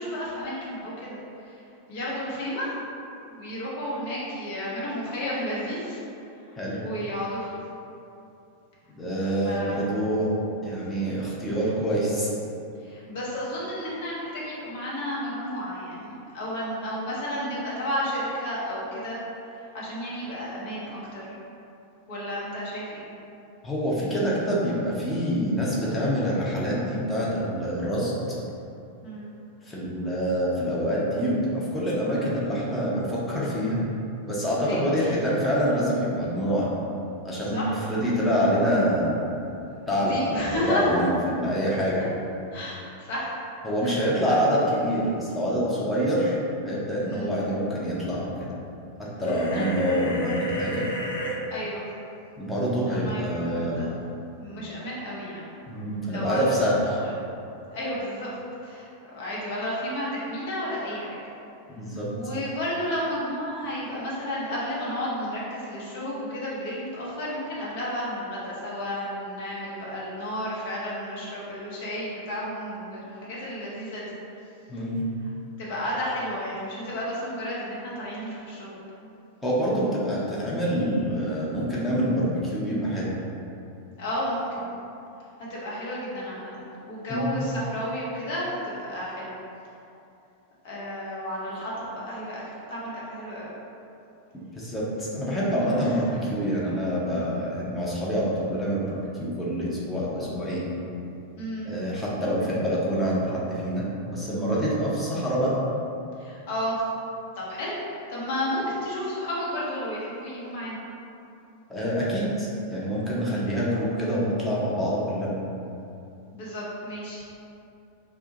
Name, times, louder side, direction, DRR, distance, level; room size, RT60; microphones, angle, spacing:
voice 1, 0.0-1.6 1.9-2.8 3.3-6.0 6.8-7.6 9.2-9.9 12.8-19.2 19.6-21.4 22.1-23.0 29.0-29.3 34.6-35.3 37.5-37.8 40.0-41.0 42.5-43.3 43.8-44.4 47.0-47.3 49.5-49.6 51.5-51.8 52.9-53.9 54.4-55.5 56.0-56.5 57.0-57.1 57.7-58.3 58.6-61.2 62.1-74.1 75.6-78.7 84.0-84.7 85.5-89.3 90.6-92.4 92.7-93.5 95.8-96.1 101.4-101.7 106.2-106.8 107.3-110.8 116.3-117.2, equal, 50° left, -6 dB, 0.9 m, -32 dB
voice 2, 8.9-10.3 10.6-12.3 23.6-28.1 29.6-33.9 34.3-36.7 37.2-39.4 39.9-42.0 43.6-46.4 46.6-48.5 49.2-50.9 52.4-53.9 55.7-56.7 61.7-62.1 74.7-75.0 79.4-83.1 87.1-87.5 94.5-100.7 101.7-103.8 104.1-105.5 111.7-115.3, equal, 10° left, -7 dB, 0.8 m, -26 dB
sound 1, 49.2-51.3, equal, 65° left, 0.4 m, -32 dB
2.7 x 2.3 x 3.9 m, 2.7 s
figure-of-eight pair, 90°, 0 cm